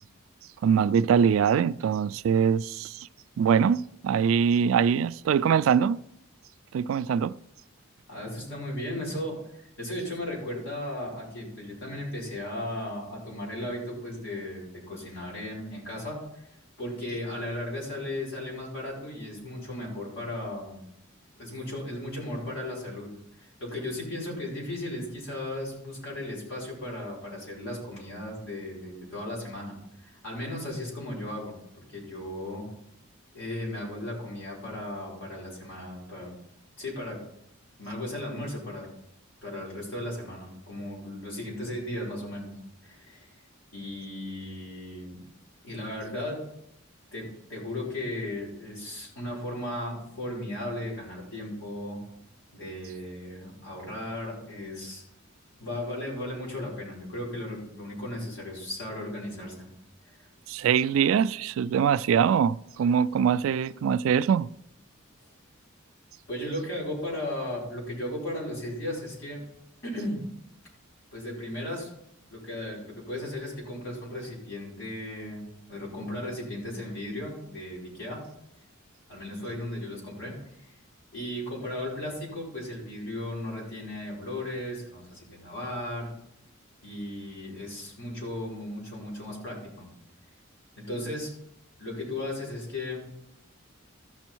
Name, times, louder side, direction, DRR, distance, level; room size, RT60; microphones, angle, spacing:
voice 1, 0.6-3.1 3.4-6.0 6.7-7.4 60.5-64.5, right 7 dB, 70° right, 0.3 m, -23 dB
voice 2, 8.1-16.4 16.8-20.9 21.4-23.1 23.4-29.7 30.0-32.7 33.3-36.3 36.8-37.2 37.8-38.9 39.4-42.5 42.8-43.3 43.7-45.2 45.6-46.4 47.1-52.0 52.5-55.0 55.6-59.7 60.0-60.3 66.3-69.4 69.8-70.2 71.1-71.9 72.3-78.2 79.1-80.7 81.1-86.1 86.8-89.9 90.8-91.3 91.8-93.0, left 1 dB, 65° left, 5.1 m, -36 dB
15.0 x 6.2 x 4.5 m
head